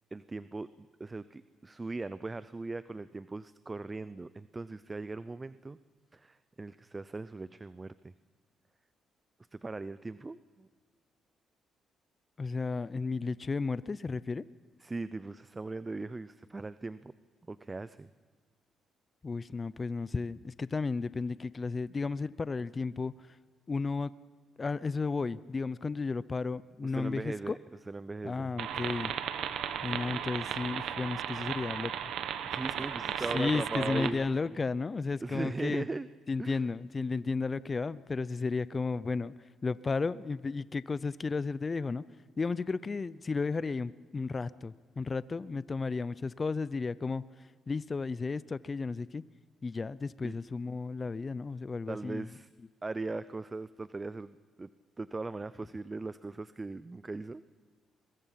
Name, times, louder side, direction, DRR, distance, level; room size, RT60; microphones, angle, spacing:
voice 1, 0.1-5.8 6.1-8.1 9.5-10.7 14.8-17.1 17.5-18.1 26.8-27.6 27.9-28.5 32.5-34.2 35.2-36.1 36.4-36.6 50.2-50.4 51.9-52.5 52.8-54.7 55.0-57.4, right 3 dB, 20° right, 15 dB, 0.5 m, -39 dB
voice 2, 12.4-14.4 19.2-23.4 23.7-24.1 24.6-27.6 28.2-29.1 29.8-32.1 33.2-35.8 36.3-39.3 39.6-42.0 42.4-47.2 47.7-49.2 49.6-52.3, left 4 dB, 30° left, 18 dB, 0.5 m, -33 dB
sound 1, 28.6-34.1, right 9 dB, 80° right, 1.1 m, -35 dB
22.5 x 22.0 x 5.8 m, 1.5 s
cardioid pair, 90°, 0 cm